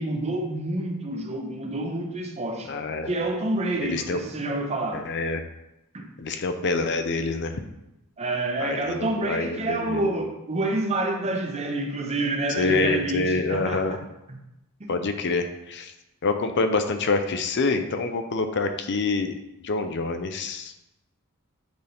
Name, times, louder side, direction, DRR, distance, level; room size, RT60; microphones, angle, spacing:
voice 1, 0.0-2.7 3.1-5.1 5.9-6.1 8.2-14.0 14.3-14.4 14.8-14.9, right 2 dB, 30° right, 3 dB, 0.7 m, -28 dB
voice 2, 2.7-3.1 3.8-4.2 4.9-5.4 6.2-7.6 8.6-10.1 12.6-14.0 14.9-15.9 16.2-19.4 19.6-20.7, left 3 dB, 50° left, 7 dB, 0.5 m, -26 dB
7.9 x 4.0 x 3.4 m, 0.90 s
head